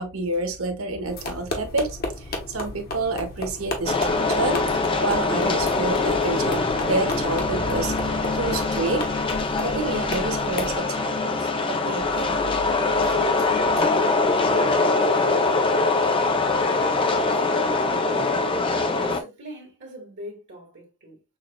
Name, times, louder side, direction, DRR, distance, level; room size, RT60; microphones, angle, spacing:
voice 1, 0.0-12.4 13.0-13.5 13.7-13.9, right 3 dB, 75° right, 1.0 m, -29 dB
sound 1, 1.1-10.8, left 1 dB, 45° left, 1.1 m, -34 dB
sound 2, 3.9-19.2, left 3 dB, 25° left, 0.5 m, -23 dB
sound 3, 12.0-14.9, left 2 dB, 40° right, 1.4 m, -43 dB
voice 2, 17.1-18.1 18.8-21.2, equal, 60° right, 1.7 m, -42 dB
6.4 x 2.4 x 2.2 m
head